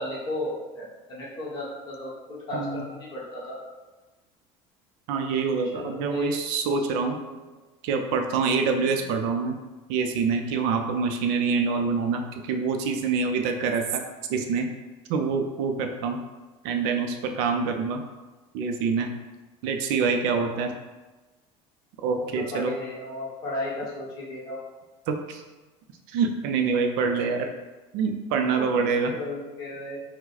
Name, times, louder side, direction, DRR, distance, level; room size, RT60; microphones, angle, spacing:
voice 1, 0.0-3.6 5.7-6.4 6.9-7.4 22.1-24.6 28.6-28.7 29.1-30.0, left 1 dB, 30° left, -6 dB, 1.1 m, -34 dB
voice 2, 5.1-7.2 7.8-9.6 9.9-14.0 14.3-14.7 15.1-16.2 16.6-18.0 18.5-19.1 19.6-20.7 22.0-22.7 25.1-25.4 26.1-27.5 27.9-29.1, right 5 dB, 65° right, 4 dB, 0.5 m, -25 dB
4.7 x 2.1 x 4.0 m, 1.2 s
cardioid pair, 175°, 14 cm